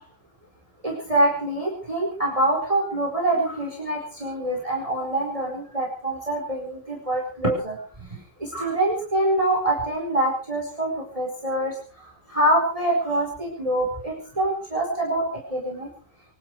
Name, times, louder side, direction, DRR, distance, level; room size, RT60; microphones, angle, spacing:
voice 1, 0.8-11.8 12.3-15.2 15.5-15.9, right 1 dB, 20° right, 0 dB, 4.7 m, -25 dB
25.0 x 12.0 x 4.8 m, 0.39 s
omnidirectional pair, 1.8 m